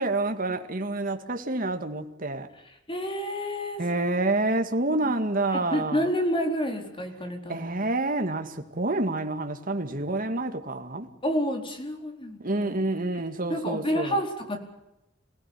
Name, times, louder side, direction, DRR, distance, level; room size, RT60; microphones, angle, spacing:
voice 1, 0.0-2.5 3.8-6.0 7.5-11.1 12.4-14.2, right 2 dB, 45° right, 2.1 m, -28 dB
voice 2, 2.9-4.2 4.9-5.1 5.7-7.7 11.2-12.8 13.5-14.6, equal, 25° left, 4.4 m, -29 dB
27.0 x 17.5 x 8.5 m
head